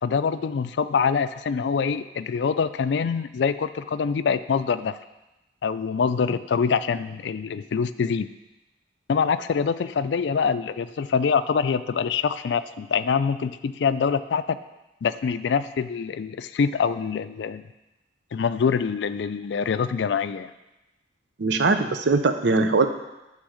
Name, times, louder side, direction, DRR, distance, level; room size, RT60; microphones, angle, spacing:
voice 1, 0.0-5.0 5.6-8.3 9.1-14.6 15.0-17.6 18.3-20.5, left 6 dB, 70° left, 13 dB, 0.4 m, -25 dB
voice 2, 21.4-22.9, right 3 dB, 75° right, 7 dB, 0.6 m, -21 dB
10.0 x 3.5 x 6.3 m, 1.0 s
head